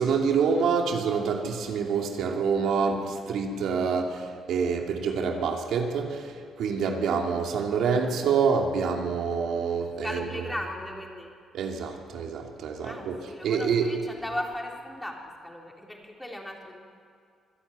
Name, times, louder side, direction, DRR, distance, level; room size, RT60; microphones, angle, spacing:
voice 1, 0.0-10.2 11.5-13.2 13.4-13.9, right 5 dB, 80° right, 2 dB, 2.7 m, -27 dB
voice 2, 10.0-11.3 12.8-15.1 15.4-16.8, left 1 dB, 5° left, 0 dB, 4.3 m, -36 dB
25.0 x 12.5 x 9.5 m, 2.4 s
cardioid pair, 90°, 0 cm